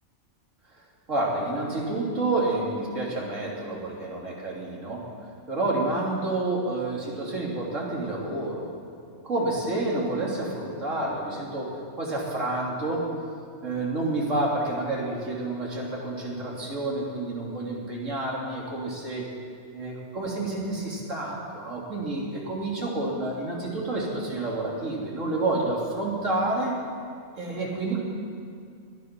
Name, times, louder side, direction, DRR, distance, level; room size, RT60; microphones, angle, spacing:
voice 1, 1.1-5.0 5.5-8.7 9.2-11.7 12.0-13.0 13.6-19.2 19.7-26.7 27.3-28.0, right 2 dB, 70° right, -3 dB, 3.2 m, -29 dB
19.5 x 11.5 x 6.0 m, 2.3 s
omnidirectional pair, 1.4 m